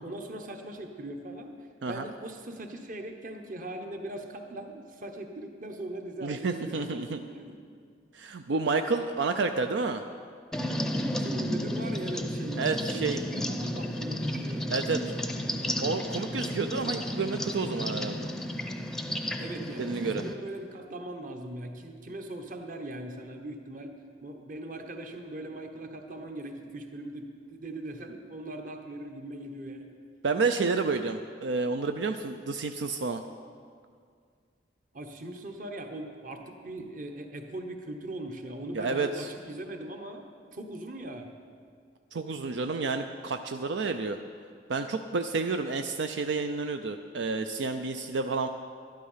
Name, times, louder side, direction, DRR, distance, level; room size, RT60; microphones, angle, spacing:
voice 1, 0.0-7.6 11.1-14.7 19.4-23.9 24.2-30.0 34.9-40.3 40.5-41.3, right 1 dB, 45° right, 4 dB, 1.1 m, -40 dB
voice 2, 6.2-7.2 8.1-10.0 12.6-13.2 14.7-15.0 15.8-18.3 19.8-20.2 30.2-33.2 38.7-39.3 42.1-44.2 44.7-48.5, right 4 dB, 80° right, 7 dB, 0.5 m, -30 dB
sound 1, 10.5-20.3, left 1 dB, 5° left, 0.6 m, -32 dB
12.0 x 11.5 x 5.7 m, 2.1 s
head